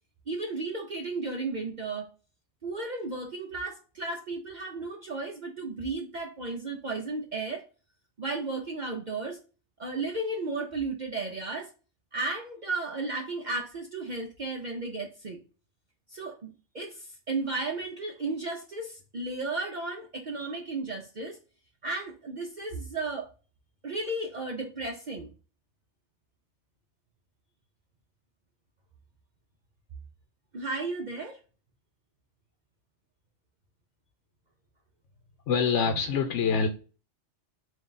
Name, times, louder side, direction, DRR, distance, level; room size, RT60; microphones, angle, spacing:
voice 1, 0.3-2.1 2.6-7.6 8.2-9.4 9.8-11.7 12.1-15.4 16.1-21.4 21.8-23.3 23.8-25.3 30.5-31.4, right 3 dB, 45° right, 0.7 m, -34 dB
voice 2, 35.5-36.7, left 6 dB, 80° left, 0.9 m, -25 dB
3.7 x 2.6 x 3.8 m
omnidirectional pair, 1.2 m